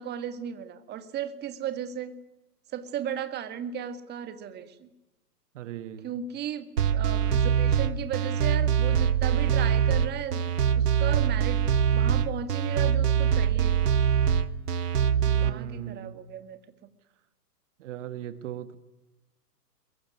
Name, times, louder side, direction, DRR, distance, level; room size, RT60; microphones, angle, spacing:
voice 1, 0.0-2.2 2.7-4.9 6.0-10.4 10.7-11.6 11.9-13.8 15.3-16.6, right 9 dB, 20° right, 10 dB, 2.0 m, -35 dB
voice 2, 5.5-6.2 15.3-16.2 17.8-18.8, right 11 dB, 45° right, 12 dB, 1.6 m, -38 dB
sound 1, 6.8-15.5, right 8 dB, 70° right, 1.9 m, -23 dB
23.0 x 22.5 x 9.6 m, 0.99 s
hypercardioid pair, 125°, 49 cm